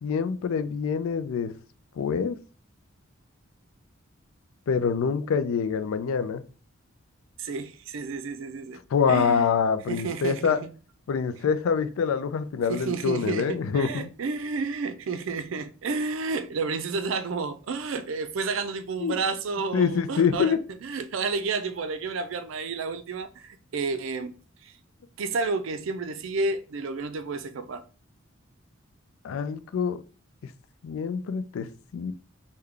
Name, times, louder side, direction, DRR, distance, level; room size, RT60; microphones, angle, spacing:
voice 1, 0.0-1.5 2.0-2.4 4.7-6.4 8.9-10.6 11.1-14.1 19.0-19.2 19.7-20.6 29.2-30.0 30.8-32.1, left 6 dB, 80° left, 0.3 m, -25 dB
voice 2, 7.4-8.8 9.1-9.5 9.9-10.7 12.7-24.3 24.6-24.7 25.2-27.8, right 4 dB, 70° right, 0.4 m, -31 dB
3.6 x 2.2 x 3.3 m
head